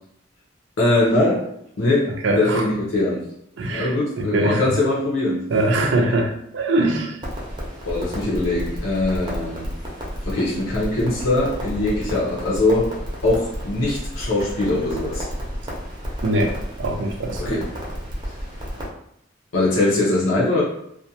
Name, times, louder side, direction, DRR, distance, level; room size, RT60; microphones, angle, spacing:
voice 1, 0.8-1.4 1.8-2.1 2.4-3.2 3.7-5.4 5.8-6.1 7.8-9.7 10.3-12.9 13.2-15.2 17.4-17.7 19.5-20.6, left 2 dB, 85° left, -6 dB, 0.7 m, -21 dB
voice 2, 2.2-2.6 3.6-3.9 4.2-4.6 5.5-7.1 16.2-16.5 16.8-17.6, right 2 dB, 70° right, 3 dB, 0.5 m, -22 dB
Crackle, 7.2-18.9, equal, 25° right, 0.6 m, -31 dB
2.4 x 2.2 x 2.7 m, 0.73 s
head